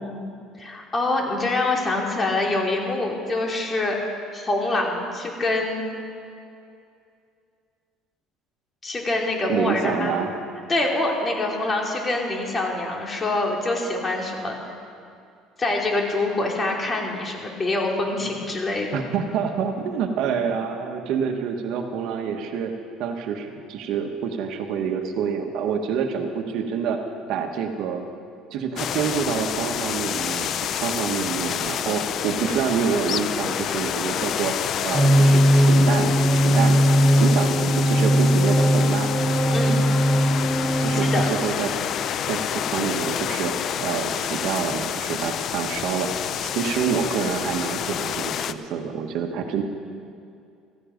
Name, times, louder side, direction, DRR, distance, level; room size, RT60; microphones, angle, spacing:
voice 1, 0.0-3.9 4.3-5.8 8.8-10.2 10.7-14.6 15.6-19.0 39.5-39.8 41.1-41.3, left 2 dB, 25° left, 0 dB, 3.0 m, -25 dB
voice 2, 9.5-10.3 18.2-18.3 18.9-22.7 23.0-27.0 27.3-28.0 28.5-39.1 40.8-41.8 42.3-43.5 43.8-49.6, right 7 dB, 65° right, 5 dB, 1.4 m, -27 dB
sound 1, 28.8-48.5, left 9 dB, 50° left, 0.5 m, -28 dB
sound 2, 34.9-41.3, equal, ahead, 1.4 m, -19 dB
15.5 x 15.0 x 5.2 m, 2.4 s
cardioid pair, 115°, 0 cm